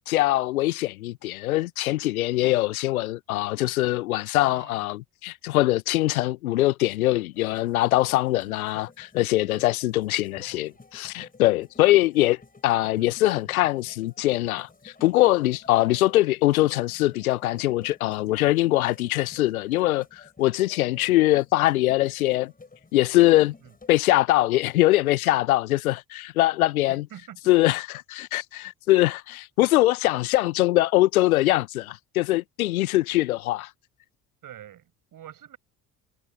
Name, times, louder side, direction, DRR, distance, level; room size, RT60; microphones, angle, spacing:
voice 1, 0.0-22.5 22.9-23.5 23.9-27.1 27.5-33.7, left 17 dB, 75° left, 1.1 m, -22 dB
voice 2, 4.5-4.9 10.2-10.8 13.0-13.5 23.6-23.7 26.9-27.4 34.4-35.6, right 11 dB, 50° right, 7.5 m, -47 dB
sound 1, 7.3-23.9, left 3 dB, 20° left, 6.4 m, -51 dB
figure-of-eight pair, 50°, 43 cm